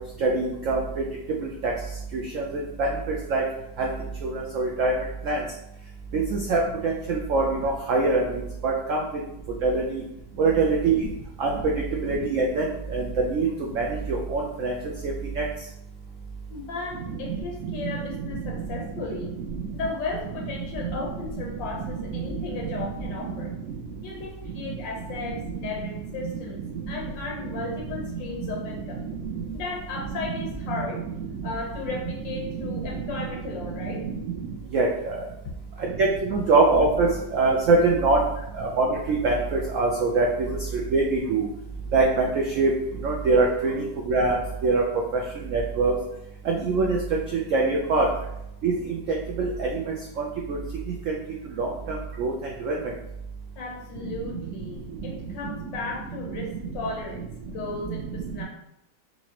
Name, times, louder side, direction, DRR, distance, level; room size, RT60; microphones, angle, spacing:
voice 1, 0.2-0.8 2.3-2.4 2.8-2.9 3.3-3.4 3.8-3.9 4.2-4.9 5.3-5.4 6.3-8.2 8.6-9.0 9.6-10.0 10.4-11.0 11.4-11.5 12.0-12.6 12.9-13.0 13.3-13.5 13.8-14.7 15.4-15.5 34.7-34.9 36.0-37.1 37.3-38.2 38.6-40.3 40.9-41.4 41.9-42.3 42.6-42.7 43.0-44.4 44.6-44.8 45.5-45.9 46.5-47.0 47.5-48.1 48.6-48.7 49.4-49.7 51.6-51.7 52.2-52.3 52.7-52.8, right 3 dB, 85° right, -1 dB, 0.7 m, -22 dB
voice 2, 16.5-19.3 19.7-23.5 24.0-29.1 29.5-31.0 31.4-34.0 38.4-38.5 53.6-58.4, left 3 dB, 90° left, -1 dB, 1.6 m, -35 dB
4.2 x 2.8 x 2.9 m, 0.83 s
omnidirectional pair, 1.9 m